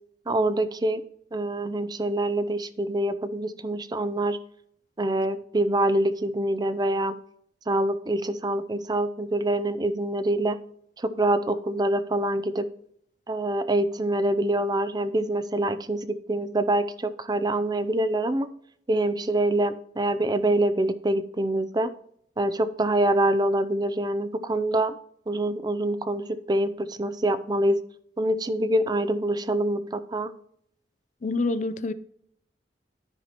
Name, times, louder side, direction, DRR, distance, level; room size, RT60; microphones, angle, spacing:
voice 1, 0.3-1.0 1.3-4.4 5.0-7.2 7.7-10.6 11.0-12.7 13.3-18.5 18.9-21.9 22.4-24.9 25.3-27.8 28.2-30.3, right 1 dB, 25° right, 0.5 m, -25 dB
voice 2, 31.2-31.9, left 3 dB, 40° left, 0.5 m, -26 dB
13.0 x 5.7 x 3.0 m
head